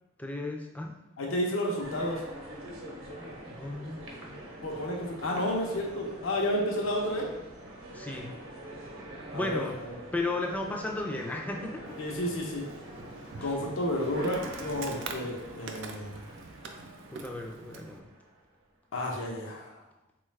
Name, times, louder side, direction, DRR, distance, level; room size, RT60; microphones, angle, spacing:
voice 1, 0.2-0.9 3.5-4.1 7.9-8.3 9.3-9.7 10.1-11.8 13.3-13.5 17.1-18.0, left 2 dB, 10° left, 1 dB, 0.3 m, -34 dB
voice 2, 1.2-2.2 4.6-7.3 9.3-10.0 12.0-12.6 13.4-16.2 18.9-19.8, left 1 dB, 75° left, -1 dB, 0.6 m, -31 dB
sound 1, 1.8-18.4, right 1 dB, 80° right, 0.8 m, -45 dB
Insect, 11.9-18.0, right 4 dB, 60° right, 0.4 m, -45 dB
4.0 x 2.3 x 3.1 m, 0.93 s
head